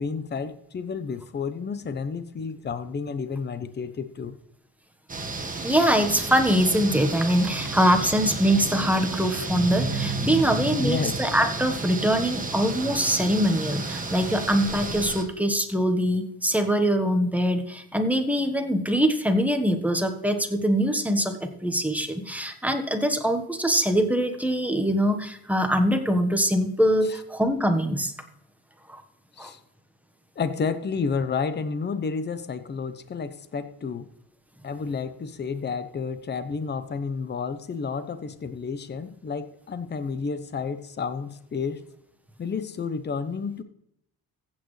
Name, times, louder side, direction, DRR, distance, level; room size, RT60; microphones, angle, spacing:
voice 1, 0.0-4.4 10.6-11.2 27.0-27.1 29.4-29.6 30.4-34.1 34.6-41.8 42.4-43.6, left 5 dB, 30° left, 11 dB, 0.9 m, -31 dB
sound 1, 5.1-15.2, right 3 dB, 20° right, 1.6 m, -31 dB
voice 2, 5.6-28.1 28.9-29.0 29.4-29.5, equal, 5° right, 5 dB, 1.3 m, -23 dB
15.0 x 8.7 x 3.3 m, 0.74 s
cardioid pair, 115°, 37 cm